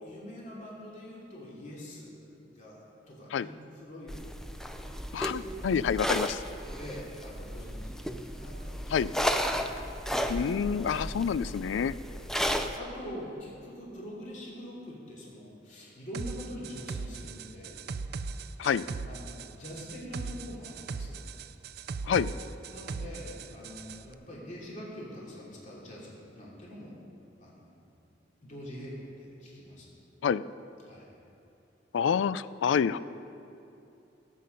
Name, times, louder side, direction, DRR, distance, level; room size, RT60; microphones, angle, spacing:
voice 1, 0.0-4.3 5.2-5.8 6.7-8.9 11.9-17.9 19.1-21.3 22.7-27.0 27.4-27.8 28.4-29.9 30.9-31.1, equal, 40° left, -5 dB, 2.8 m, -44 dB
sound 1, 4.1-12.8, equal, 5° left, 0.5 m, -34 dB
voice 2, 5.1-6.4 8.9-9.1 10.3-11.9 18.6-18.8 22.0-22.3 30.2-30.4 31.9-33.0, left 7 dB, 90° left, 16 dB, 0.3 m, -27 dB
sound 2, 16.1-24.0, right 4 dB, 60° right, 0.4 m, -39 dB
15.5 x 8.5 x 5.3 m, 2.8 s
head